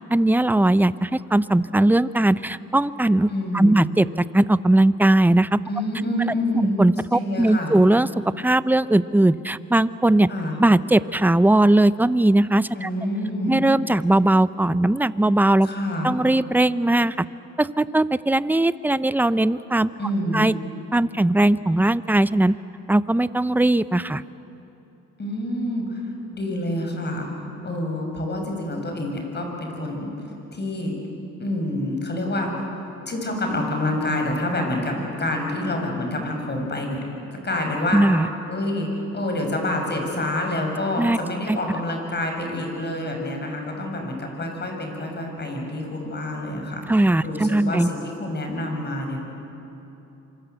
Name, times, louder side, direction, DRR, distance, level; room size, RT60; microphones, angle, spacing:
voice 1, 0.1-4.1 4.3-5.6 6.5-8.1 8.4-10.3 10.6-12.9 13.5-15.7 16.0-17.3 17.6-19.9 20.3-20.5 20.9-22.6 22.9-24.2 37.9-38.3 41.0-41.2 41.5-41.6 46.9-47.9, right 1 dB, 5° right, 15 dB, 0.6 m, -19 dB
voice 2, 3.3-3.9 5.7-6.8 7.1-7.8 10.3-10.6 12.7-13.6 15.6-16.1 20.0-20.5 25.2-26.0 26.3-27.3 27.6-30.1 30.5-31.0 31.4-32.6 33.0-37.0 37.3-38.0 38.5-49.2, left 1 dB, 35° left, 2 dB, 6.8 m, -27 dB
26.5 x 25.0 x 8.2 m, 3.0 s
cardioid pair, 90°, 30 cm